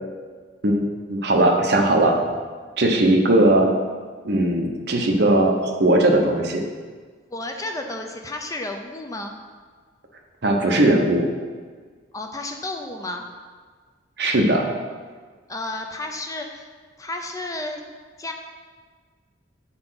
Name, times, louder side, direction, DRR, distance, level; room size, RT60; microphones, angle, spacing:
voice 1, 0.6-2.2 2.8-3.7 4.2-6.6 10.4-11.3 14.2-14.7, right 1 dB, 60° right, 2 dB, 0.9 m, -19 dB
voice 2, 7.3-9.4 12.1-13.3 15.5-16.7 17.0-17.8 18.2-18.3, left 2 dB, 20° left, 3 dB, 0.5 m, -32 dB
7.7 x 4.3 x 5.7 m, 1.5 s
head